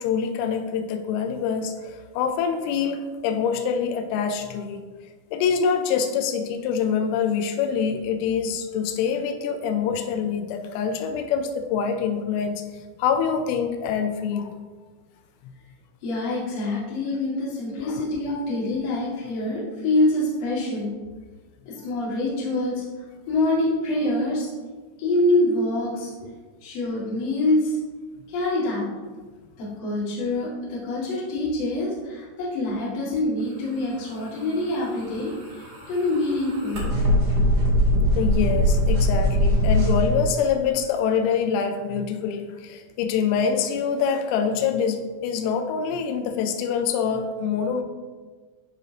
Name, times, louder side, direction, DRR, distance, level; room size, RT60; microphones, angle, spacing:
voice 1, 0.0-4.8 5.3-12.6 13.0-14.6 17.8-18.0 26.2-26.3 38.2-47.8, left 7 dB, 85° left, 6 dB, 3.1 m, -25 dB
voice 2, 16.0-20.9 21.7-22.8 23.3-24.5 25.0-26.1 26.6-27.8 28.3-28.8 29.6-36.8, left 2 dB, 45° left, -6 dB, 2.3 m, -25 dB
sound 1, 34.9-40.1, equal, 35° right, 2.0 m, -21 dB
13.5 x 5.1 x 2.9 m, 1.4 s
omnidirectional pair, 5.6 m